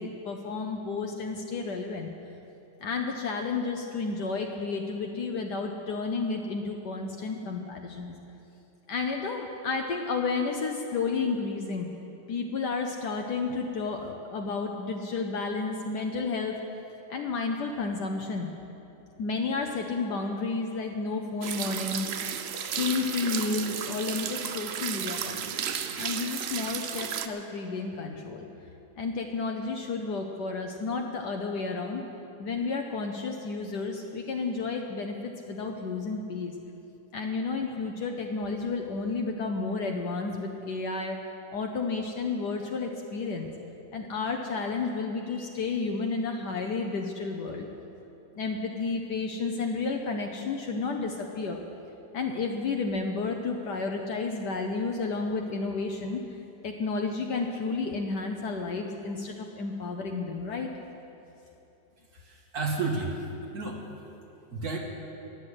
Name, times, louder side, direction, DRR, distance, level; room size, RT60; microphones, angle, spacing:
voice 1, 0.0-2.1 2.8-8.1 8.9-11.9 12.3-16.6 17.1-18.5 19.2-22.1 22.8-25.5 26.0-28.5 29.0-32.0 32.4-36.5 37.1-41.2 41.5-43.5 43.9-47.7 48.4-51.6 52.1-56.2 56.6-60.7, left 4 dB, 70° left, 2 dB, 1.4 m, -31 dB
sound 1, 21.4-27.3, right 8 dB, 85° right, 0.5 m, -33 dB
voice 2, 62.1-63.2 63.5-63.8 64.5-64.8, right 3 dB, 60° right, 0 dB, 2.0 m, -31 dB
13.0 x 8.1 x 10.0 m, 2.9 s
omnidirectional pair, 1.9 m